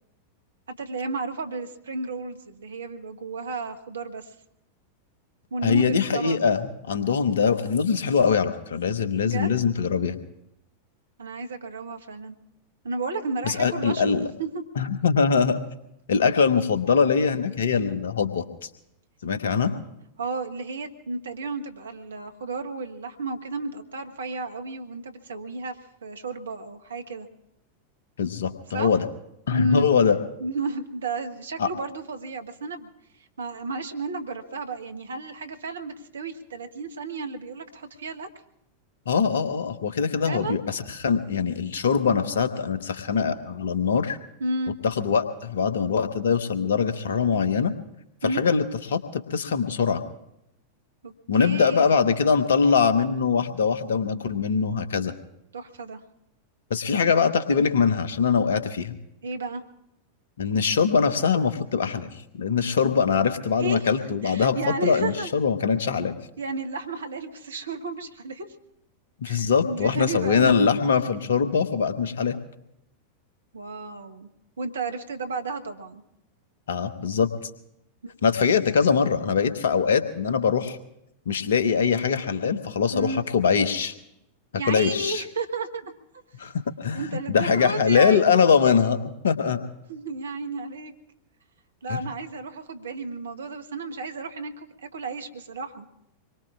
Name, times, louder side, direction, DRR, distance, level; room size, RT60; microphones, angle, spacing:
voice 1, 0.8-4.3 5.5-6.4 9.2-9.6 11.2-12.4 12.8-14.6 19.5-19.8 20.2-25.8 26.0-27.3 28.7-28.9 29.5-29.9 30.4-32.9 33.4-38.3 40.2-40.6 44.4-44.8 48.2-48.4 51.0-51.1 51.4-52.0 55.5-56.0 59.2-59.6 63.6-63.9 64.2-65.3 66.4-68.5 69.2-70.5 73.5-74.3 74.6-76.0 78.0-78.1 82.9-83.2 84.6-85.9 86.9-88.4 89.9-90.9 91.8-95.9, right 3 dB, 70° right, 7 dB, 1.2 m, -32 dB
voice 2, 5.6-10.2 13.4-14.3 14.8-15.6 16.1-18.4 19.2-19.7 28.2-29.1 29.5-30.2 31.6-31.7 39.1-44.2 44.8-47.7 48.2-50.0 51.3-55.1 56.7-58.9 60.4-62.1 62.4-66.2 69.2-72.4 76.7-77.3 78.2-80.8 81.3-83.9 84.7-85.2 86.4-87.0 87.3-89.6 91.9-92.0, left 6 dB, 65° left, 11 dB, 1.1 m, -22 dB
25.5 x 22.5 x 2.4 m, 0.84 s
figure-of-eight pair, 90°, 0 cm